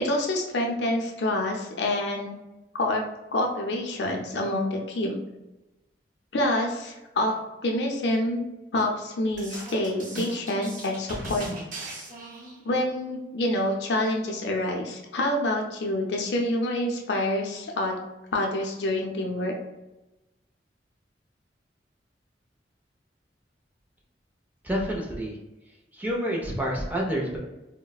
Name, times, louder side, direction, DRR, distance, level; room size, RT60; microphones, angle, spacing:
voice 1, 0.0-2.4 2.7-3.0 3.3-5.2 6.3-7.3 7.6-8.4 8.7-11.5 12.6-18.0 18.3-19.5, left 1 dB, 75° left, 1 dB, 0.5 m, -27 dB
sound 1, 9.3-12.7, right 1 dB, 45° right, 1.0 m, -38 dB
voice 2, 24.6-25.4 25.9-27.4, equal, 10° right, -2 dB, 0.6 m, -28 dB
3.8 x 2.1 x 2.3 m, 1.0 s
head